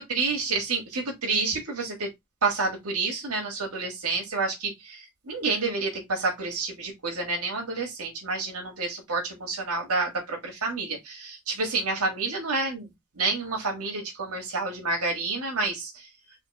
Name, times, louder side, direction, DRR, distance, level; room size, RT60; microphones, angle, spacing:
voice 1, 0.0-2.1 2.4-12.9 13.2-16.1, right 3 dB, 90° right, 1.6 m, -29 dB
4.2 x 2.7 x 4.1 m
head